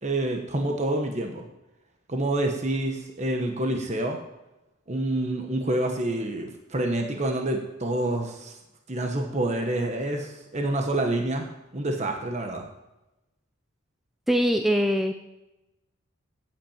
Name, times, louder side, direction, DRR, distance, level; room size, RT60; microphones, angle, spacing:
voice 1, 0.0-1.4 2.1-4.2 4.9-8.6 8.9-11.5 11.7-12.6, right 1 dB, 30° right, 3 dB, 1.2 m, -27 dB
voice 2, 14.3-15.1, equal, ahead, 5 dB, 0.5 m, -22 dB
8.6 x 8.6 x 8.8 m, 0.97 s
head